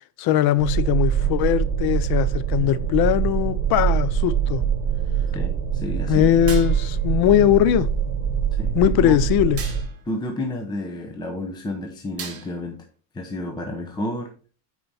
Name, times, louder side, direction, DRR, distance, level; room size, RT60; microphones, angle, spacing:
voice 1, 0.2-4.6 6.1-7.9 8.7-9.6, left 12 dB, 55° left, 0.6 m, -20 dB
sound 1, 0.6-9.8, right 8 dB, 45° right, 2.9 m, -23 dB
voice 2, 5.3-6.3 8.5-9.2 10.1-12.8 13.1-14.3, left 1 dB, 10° left, 0.7 m, -31 dB
sound 2, 6.5-7.1 9.6-10.1 12.2-12.8, right 6 dB, 30° right, 2.0 m, -37 dB
8.9 x 4.6 x 4.1 m
cardioid pair, 165°, 46 cm